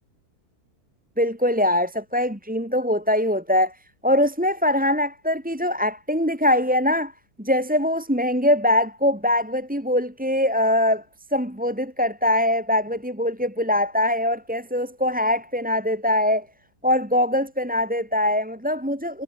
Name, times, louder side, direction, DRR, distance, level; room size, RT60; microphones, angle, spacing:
voice 1, 1.2-3.8 4.0-7.1 7.4-11.0 11.3-16.5 16.8-19.2, left 1 dB, 5° right, 2.5 m, -22 dB
omnidirectional pair, 1.7 m